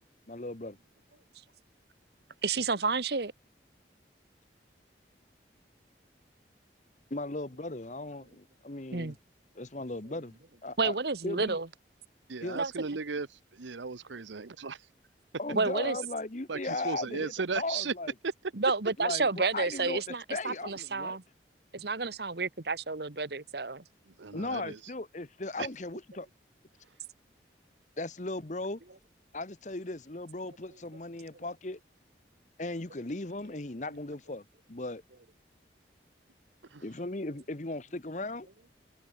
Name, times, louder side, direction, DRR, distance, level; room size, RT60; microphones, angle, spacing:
voice 1, 0.3-0.8 7.1-9.1 9.5-10.3 10.6-10.9 11.2-11.6 12.4-12.6 15.4-18.1 19.0-21.2 24.3-26.3 28.0-28.8 29.3-31.8 32.6-35.0 36.8-38.5, left 2 dB, 40° left, 1.2 m, -37 dB
voice 2, 2.4-3.3 8.9-9.1 10.8-11.7 12.6-12.7 15.5-16.0 18.6-21.2 21.7-23.8, right 4 dB, 60° right, 1.3 m, -30 dB
voice 3, 12.3-14.9 16.5-17.9 18.2-18.3 24.0-24.8 25.6-25.7 26.8-27.0 36.6-36.8, right 4 dB, 90° right, 0.9 m, -36 dB
open air
head